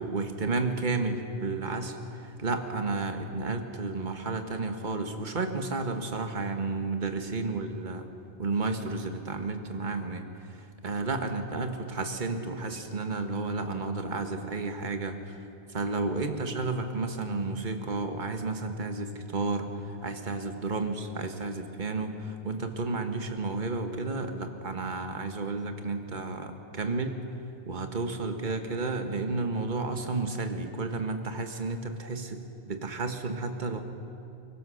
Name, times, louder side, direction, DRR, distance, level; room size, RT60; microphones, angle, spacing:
voice 1, 0.0-8.1 8.4-15.4 15.7-27.2 27.7-33.8, right 3 dB, 45° right, 5 dB, 1.6 m, -32 dB
24.0 x 22.5 x 6.5 m, 2.6 s
omnidirectional pair, 1.2 m